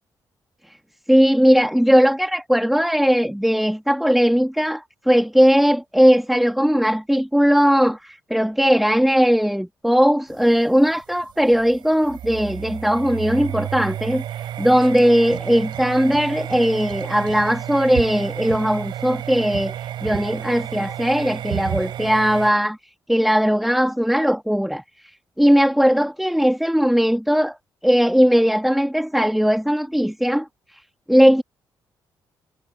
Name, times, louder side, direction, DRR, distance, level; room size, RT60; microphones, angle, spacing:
voice 1, 1.1-14.2 14.6-19.7 20.0-22.8 23.1-24.8 25.4-27.6 27.8-30.5 31.1-31.4, equal, ahead, 2.9 m, -18 dB
sound 1, 10.3-22.5, right 11 dB, 80° right, 5.7 m, -31 dB
cardioid pair, 80°, 8 cm